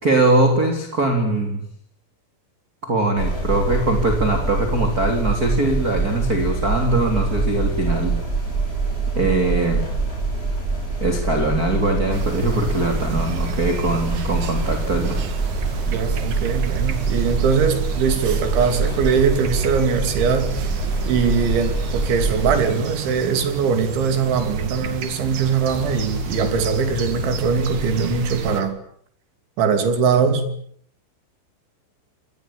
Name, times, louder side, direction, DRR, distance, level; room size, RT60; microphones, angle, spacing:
voice 1, 0.0-1.6 2.8-8.1 9.1-9.8 11.0-15.2, right 2 dB, 20° right, 4 dB, 3.3 m, -21 dB
sound 1, 3.2-22.6, right 3 dB, 10° left, 8.0 m, -25 dB
sound 2, 12.1-28.6, right 6 dB, 50° right, 2.9 m, -32 dB
voice 2, 15.9-20.6 21.1-28.8 29.6-30.5, right 6 dB, 70° right, 8 dB, 5.2 m, -21 dB
sound 3, 25.6-28.6, left 5 dB, 50° left, 5.5 m, -32 dB
27.5 x 20.5 x 8.9 m, 0.64 s
omnidirectional pair, 5.7 m